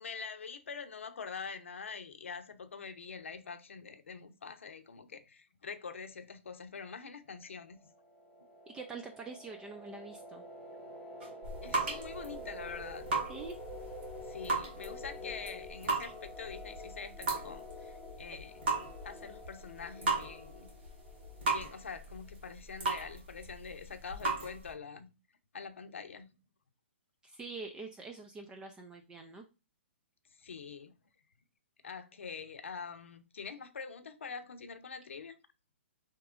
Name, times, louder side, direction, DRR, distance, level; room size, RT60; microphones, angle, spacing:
voice 1, 0.0-7.9 11.6-13.1 14.2-18.6 19.0-20.7 21.5-25.1 25.5-26.3 30.4-30.9 31.8-35.4, left 5 dB, 80° left, 0.6 m, -45 dB
sound 1, 7.5-22.1, equal, 15° left, 0.8 m, -48 dB
voice 2, 8.7-10.4 13.3-13.6 27.2-29.4, right 4 dB, 10° right, 0.3 m, -45 dB
sound 2, 11.2-24.7, right 3 dB, 60° right, 1.8 m, -37 dB
4.5 x 3.0 x 2.4 m
hypercardioid pair, 135°, 7 cm